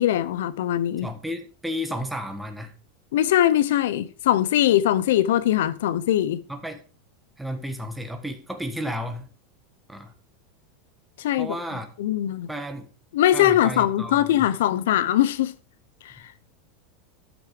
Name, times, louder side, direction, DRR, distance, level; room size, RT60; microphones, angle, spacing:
voice 1, 0.0-1.1 3.1-6.4 11.2-11.5 12.0-12.5 13.1-15.5 16.0-16.1, left 12 dB, 80° left, 0.7 m, -21 dB
voice 2, 1.0-2.7 6.5-6.8 7.4-9.3 9.9-10.1 11.4-11.9 12.5-12.9 13.3-14.5, equal, 5° right, 1.4 m, -32 dB
12.5 x 6.2 x 5.1 m
supercardioid pair, 160°, 0 cm